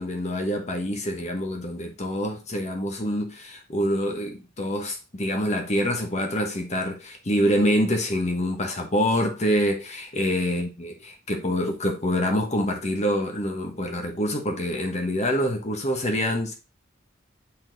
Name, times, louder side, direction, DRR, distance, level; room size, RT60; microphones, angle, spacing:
voice 1, 0.0-16.5, equal, 35° left, 1.1 m, -26 dB
7.1 x 4.0 x 3.9 m
head